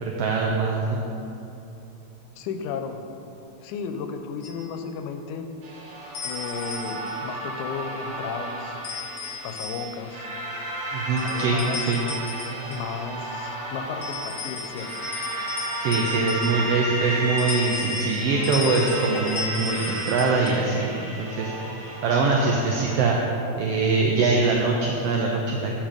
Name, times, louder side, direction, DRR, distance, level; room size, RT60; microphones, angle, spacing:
voice 1, 0.0-1.0 10.9-11.6 11.9-12.0 15.8-21.5 22.0-23.2 23.6-25.7, right 4 dB, 90° right, -1 dB, 1.3 m, -23 dB
voice 2, 2.4-3.0 3.6-5.5 6.2-8.8 9.4-10.3 11.2-12.0 12.7-15.1, left 6 dB, 85° left, 7 dB, 2.0 m, -34 dB
sound 1, 4.4-4.6 6.1-7.2 8.8-10.1 11.2-13.0 14.0-16.9 17.4-20.5, left 4 dB, 70° left, 1.6 m, -35 dB
sound 2, 5.6-23.0, right 1 dB, 60° right, 1.8 m, -33 dB
7.4 x 5.2 x 5.0 m, 2.9 s
omnidirectional pair, 3.4 m